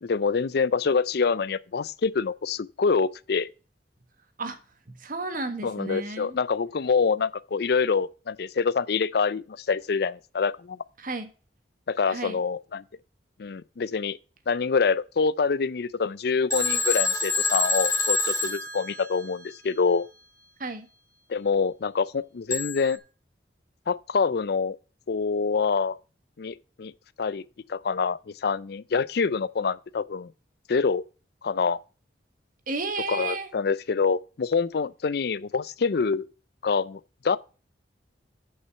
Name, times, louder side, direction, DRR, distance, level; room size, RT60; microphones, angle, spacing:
voice 1, 0.0-3.5 5.6-10.8 11.9-12.8 13.4-14.2 14.5-20.1 21.3-23.0 23.9-24.8 25.1-26.0 26.4-26.9 27.2-27.4 27.7-30.3 30.7-31.0 31.4-31.8 33.1-36.3 36.6-37.4, left 5 dB, 60° left, 0.5 m, -26 dB
voice 2, 4.9-6.4 11.0-11.3 12.1-12.4 20.6-20.9 32.7-33.5, right 3 dB, 50° right, 1.4 m, -32 dB
Telephone, 16.5-19.5 22.5-23.0, left 3 dB, 20° left, 2.3 m, -27 dB
6.4 x 5.5 x 7.0 m
head